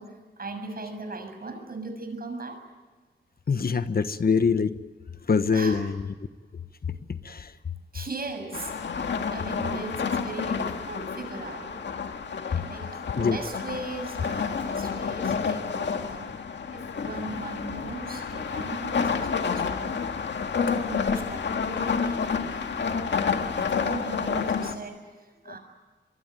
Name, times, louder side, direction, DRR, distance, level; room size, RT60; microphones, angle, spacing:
voice 1, 0.0-2.6 5.5-5.8 7.9-11.8 12.4-16.3 16.7-20.0 20.8-25.6, right 3 dB, 55° right, 6 dB, 6.9 m, -39 dB
voice 2, 3.5-4.7 5.3-5.9 7.2-7.5 12.5-12.6 13.2-13.4 25.5-25.6, left 5 dB, 55° left, 11 dB, 1.2 m, -24 dB
sound 1, 8.5-24.8, left 5 dB, 85° left, 1.9 m, -29 dB
25.5 x 23.5 x 9.2 m, 1.3 s
wide cardioid pair, 90°, 18 cm